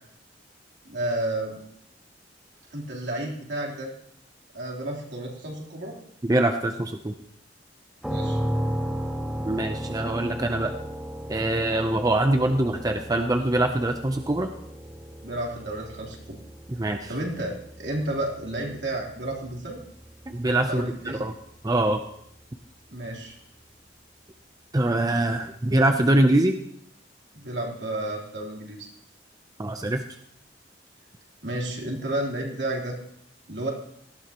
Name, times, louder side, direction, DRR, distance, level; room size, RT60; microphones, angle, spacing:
voice 1, 0.9-1.6 2.7-3.9 4.5-6.0 8.1-8.4 15.2-16.4 17.1-19.8 20.7-21.2 22.9-23.3 27.3-28.9 31.4-33.0 33.5-33.7, right 1 dB, 70° right, -2 dB, 3.4 m, -31 dB
voice 2, 6.2-7.1 9.5-10.7 11.3-14.5 16.7-17.1 20.3-21.3 21.6-22.0 24.7-26.6 29.6-30.0, right 1 dB, 20° right, 5 dB, 0.6 m, -23 dB
sound 1, 8.0-21.8, equal, ahead, 1.4 m, -35 dB
18.5 x 14.5 x 3.0 m, 0.71 s
head